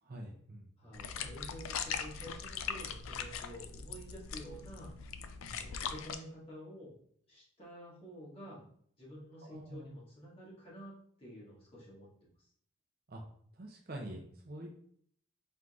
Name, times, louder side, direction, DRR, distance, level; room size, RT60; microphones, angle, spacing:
voice 1, 0.0-0.7 5.4-5.7 9.4-9.9 13.1-13.2 13.5-14.7, right 1 dB, 45° right, 1 dB, 0.6 m, -46 dB
voice 2, 0.8-4.9 5.6-7.0 7.3-8.7 9.0-12.1 12.4-12.5, equal, 25° left, -6 dB, 1.6 m, -50 dB
sound 1, 0.9-6.2, left 7 dB, 80° left, 0.4 m, -41 dB
4.4 x 3.8 x 2.5 m, 0.63 s
head